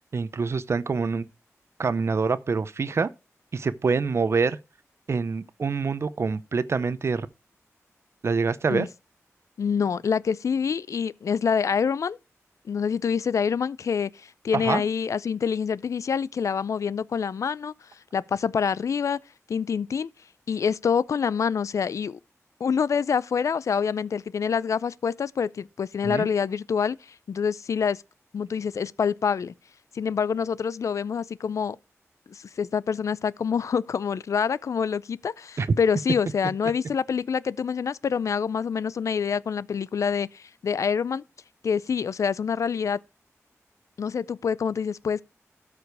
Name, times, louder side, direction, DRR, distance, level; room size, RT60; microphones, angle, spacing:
voice 1, 0.1-1.3 1.8-3.1 3.5-4.6 5.1-7.3 8.2-8.9 14.5-14.8 26.0-26.3 35.6-35.7, right 4 dB, 55° right, 0.6 m, -25 dB
voice 2, 9.6-12.2 12.7-17.7 18.1-19.2 19.5-20.1 20.5-22.2 22.6-27.0 27.3-28.0 28.3-29.5 29.9-31.8 32.3-41.2 41.6-43.0 44.0-45.2, left 6 dB, 75° left, 0.4 m, -26 dB
13.0 x 4.9 x 4.7 m
wide cardioid pair, 95°, 5 cm